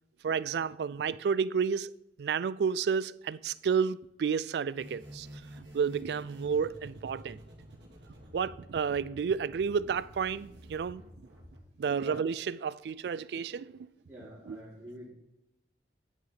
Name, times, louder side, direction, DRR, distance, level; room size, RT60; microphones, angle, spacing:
voice 1, 0.2-1.9 2.2-5.3 5.7-7.4 8.3-11.0 11.8-13.8 14.5-14.6, right 6 dB, 65° right, 0.3 m, -31 dB
sound 1, 4.7-11.6, equal, 80° right, 2.0 m, -50 dB
voice 2, 14.1-15.1, right 1 dB, 15° right, 2.6 m, -46 dB
9.7 x 6.2 x 4.0 m
head